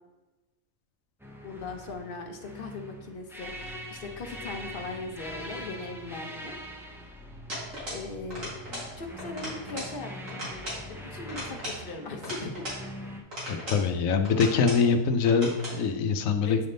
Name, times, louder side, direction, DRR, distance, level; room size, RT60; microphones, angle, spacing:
sound 1, 1.2-13.2, equal, 5° right, 0.3 m, -43 dB
voice 1, 1.4-6.6 7.9-8.5 9.0-10.5 10.9-12.6 16.4-16.6, left 3 dB, 50° left, 4 dB, 0.9 m, -39 dB
sound 2, 7.5-8.1 8.3-8.9 9.2-9.9 10.3-10.8 11.3-12.8 13.3-13.9 14.2-14.9 15.3-15.8, equal, 75° right, 2.8 m, -37 dB
voice 2, 13.5-16.6, left 5 dB, 85° left, 7 dB, 1.1 m, -24 dB
9.3 x 3.5 x 3.8 m, 1.1 s
omnidirectional pair, 1.4 m